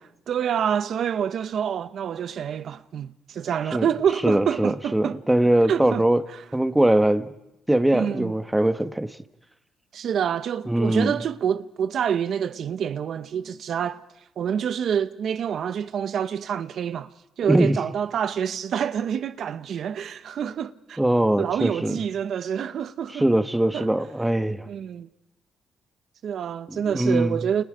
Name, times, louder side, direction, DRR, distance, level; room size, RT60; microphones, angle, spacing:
voice 1, 0.3-5.2 5.7-6.0 6.3-6.4 7.9-8.3 9.9-14.0 14.4-21.0 21.4-23.3 23.7-23.9 24.7-25.1 26.2-27.6, right 8 dB, 65° right, 0.9 m, -27 dB
voice 2, 4.2-6.2 6.5-7.3 7.7-9.2 10.7-11.2 17.5-17.8 21.0-22.0 23.1-24.7 26.7-27.4, right 1 dB, 10° right, 1.4 m, -21 dB
29.5 x 29.5 x 5.1 m
cardioid pair, 90°, 0 cm